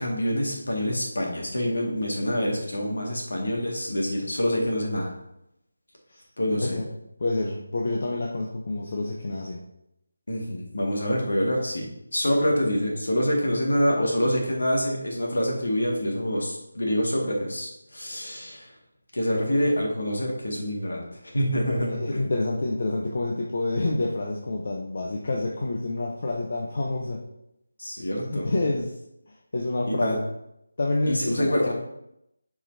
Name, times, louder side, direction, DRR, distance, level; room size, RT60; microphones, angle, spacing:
voice 1, 0.0-5.1 6.4-6.8 10.3-18.7 19.1-21.1 21.3-22.3 27.8-28.5 29.9-30.2 31.1-31.7, equal, 75° left, -1 dB, 1.9 m, -26 dB
voice 2, 6.6-6.9 7.2-9.6 21.9-27.2 28.3-28.9 29.3-30.2 30.8-31.7, left 2 dB, 50° left, -1 dB, 0.8 m, -28 dB
7.3 x 4.9 x 2.7 m, 0.83 s
figure-of-eight pair, 165°, 0 cm